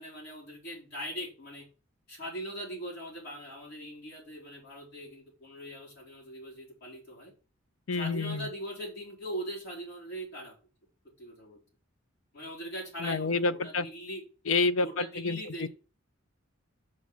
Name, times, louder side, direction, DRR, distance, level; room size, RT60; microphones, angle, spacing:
voice 1, 0.0-1.7 2.1-7.3 7.9-10.6 11.2-11.6 12.3-14.2 14.8-15.7, right 1 dB, 55° left, 4.0 m, -41 dB
voice 2, 7.9-8.5 13.0-13.9 14.5-15.7, left 3 dB, 80° left, 0.6 m, -29 dB
6.2 x 6.0 x 5.5 m
head